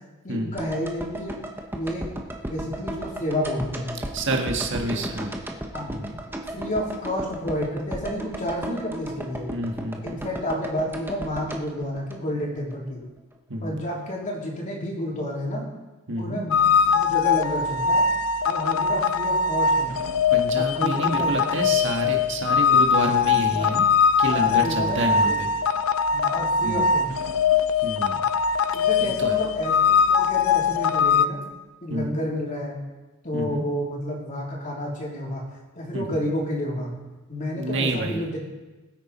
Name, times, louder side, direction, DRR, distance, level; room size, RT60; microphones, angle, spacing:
voice 1, 0.2-1.4 1.7-2.1 2.5-4.0 4.8-5.0 5.7-5.9 6.5-9.5 10.0-13.0 13.6-15.7 16.2-18.1 18.4-20.0 20.6-21.9 23.1-23.7 24.3-25.4 26.1-27.1 28.7-31.4 31.8-32.8 33.2-35.4 35.8-37.0 37.3-38.4, equal, 35° left, -3 dB, 3.6 m, -30 dB
sound 1, 0.6-12.8 13.0-13.1, right 1 dB, 10° right, 1.1 m, -35 dB
voice 2, 4.1-5.3 5.9-6.1 9.5-10.2 13.5-13.8 16.1-16.4 20.3-23.9 24.2-25.5 26.6-26.8 27.8-28.3 29.0-29.4 31.9-32.1 33.3-33.6 35.9-36.0 37.5-38.2, right 1 dB, 60° right, 2 dB, 1.7 m, -28 dB
sound 2, 16.5-31.3, left 6 dB, 75° left, 0.5 m, -21 dB
20.5 x 9.5 x 4.3 m, 1.1 s
head